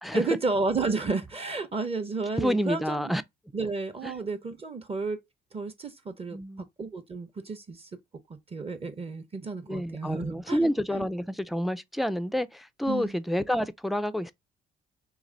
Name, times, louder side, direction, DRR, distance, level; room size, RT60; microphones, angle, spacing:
voice 1, 0.1-3.1 3.5-5.2 5.5-7.9 8.5-11.1 12.9-13.1, right 3 dB, 30° right, 0.7 m, -32 dB
voice 2, 2.4-3.2 4.0-4.1 6.3-6.6 9.7-14.3, equal, ahead, 0.3 m, -28 dB
3.3 x 3.2 x 3.7 m
cardioid pair, 90°, 20 cm